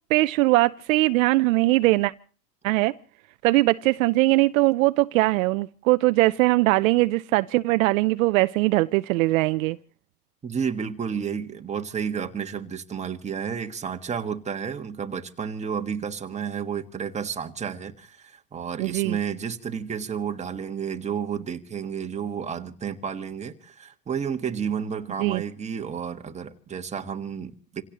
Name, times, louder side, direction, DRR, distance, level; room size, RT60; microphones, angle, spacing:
voice 1, 0.1-2.1 2.6-2.9 3.4-9.8 18.8-19.2 25.2-25.4, right 20 dB, 55° right, 0.7 m, -21 dB
voice 2, 10.4-27.8, right 7 dB, 15° right, 1.5 m, -31 dB
28.0 x 17.0 x 3.0 m
hypercardioid pair, 125°, 48 cm